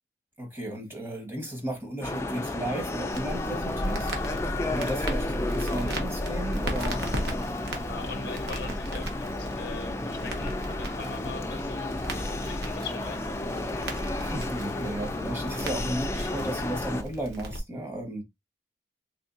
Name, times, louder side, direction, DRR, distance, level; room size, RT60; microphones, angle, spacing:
voice 1, 0.4-4.2 4.7-7.0 14.2-18.2, right 1 dB, 15° right, 1.2 m, -34 dB
sound 1, 2.0-17.0, left 2 dB, 15° left, 0.4 m, -33 dB
Crackle, 3.1-17.6, equal, 75° right, 1.1 m, -35 dB
voice 2, 7.8-11.9 12.3-13.4, left 5 dB, 90° left, 0.6 m, -41 dB
3.7 x 3.4 x 2.6 m
head